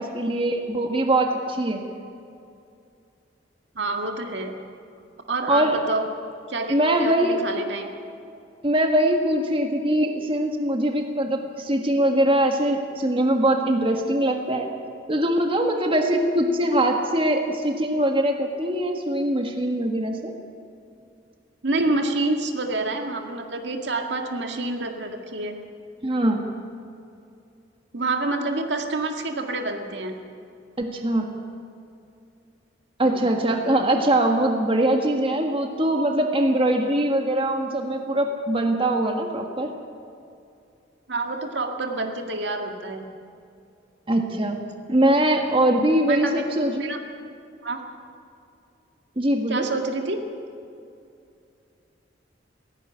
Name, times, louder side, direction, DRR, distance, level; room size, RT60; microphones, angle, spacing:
voice 1, 0.0-1.8 5.5-5.8 6.7-7.4 8.6-14.7 15.1-20.3 26.0-26.4 30.8-31.3 33.0-39.7 44.1-44.6 44.9-46.8 49.1-49.7, right 1 dB, 30° right, 3 dB, 1.7 m, -22 dB
voice 2, 3.8-4.5 5.3-6.1 6.5-7.9 21.6-25.6 27.9-30.1 33.0-33.2 41.1-43.1 46.1-46.3 46.8-47.0 47.6-47.8 49.5-50.2, right 2 dB, 70° right, 3 dB, 2.0 m, -27 dB
17.0 x 16.5 x 9.9 m, 2.5 s
head